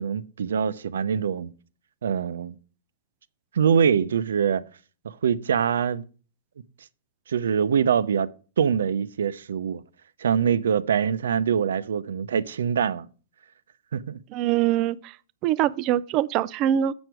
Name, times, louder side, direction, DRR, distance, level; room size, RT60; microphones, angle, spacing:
voice 1, 0.0-1.5 2.0-2.6 3.5-4.6 5.0-6.0 7.3-8.3 8.6-9.8 10.2-13.1 13.9-14.2, right 7 dB, 90° right, 0.6 m, -24 dB
voice 2, 14.3-15.2 15.4-16.9, right 11 dB, 25° right, 0.3 m, -23 dB
7.8 x 6.2 x 4.6 m
hypercardioid pair, 165°, 0 cm